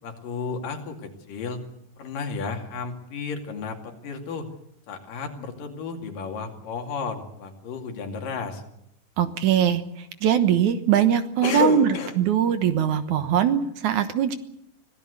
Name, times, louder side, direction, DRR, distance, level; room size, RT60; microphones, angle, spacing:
voice 1, 0.0-1.6 2.0-4.5 4.9-8.6 11.4-12.1, left 5 dB, 75° left, 4 dB, 4.1 m, -32 dB
voice 2, 9.2-11.9 12.2-14.4, right 9 dB, 65° right, 10 dB, 2.4 m, -21 dB
25.0 x 17.0 x 8.2 m, 0.74 s
omnidirectional pair, 3.9 m